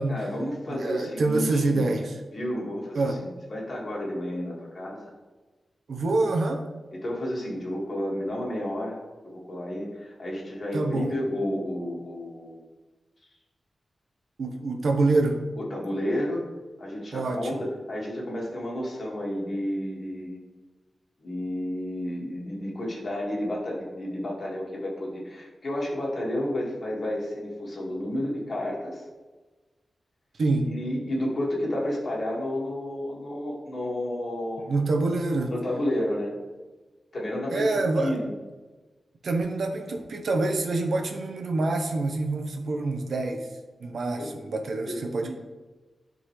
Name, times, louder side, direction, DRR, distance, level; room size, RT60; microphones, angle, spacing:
voice 1, 0.1-2.0 2.3-5.1 6.9-9.0 9.2-12.6 15.6-16.5 16.8-20.4 21.2-29.0 30.6-34.7 35.5-36.3 37.1-37.7 38.0-38.3 44.2-44.5 44.8-45.3, left 1 dB, 45° left, -3 dB, 2.0 m, -31 dB
voice 2, 0.7-2.2 2.9-3.3 5.9-6.7 10.7-11.2 14.4-15.5 17.1-17.7 30.4-30.8 34.6-35.5 37.5-38.1 39.2-43.5 43.8-45.3, right 2 dB, 70° right, 5 dB, 0.9 m, -26 dB
11.5 x 3.9 x 3.2 m, 1.3 s
wide cardioid pair, 125°, 0 cm